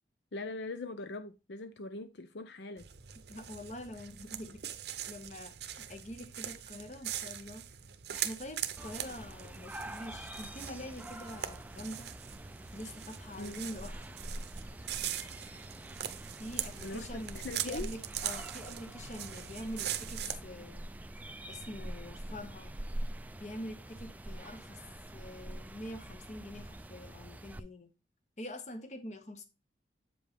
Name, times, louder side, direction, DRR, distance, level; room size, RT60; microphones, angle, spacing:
voice 1, 0.3-2.9 13.4-13.6 16.8-17.9, left 3 dB, 70° left, 0.6 m, -41 dB
sound 1, 2.8-20.4, right 11 dB, 65° right, 0.7 m, -42 dB
voice 2, 3.3-4.6 5.1-7.6 8.1-12.1 12.7-14.1 16.4-20.9 21.5-22.7 23.3-24.8 25.1-27.9 28.4-29.5, left 1 dB, 40° left, 1.0 m, -45 dB
sound 2, 8.8-27.6, right 1 dB, 10° right, 0.3 m, -45 dB
7.9 x 5.2 x 3.5 m
head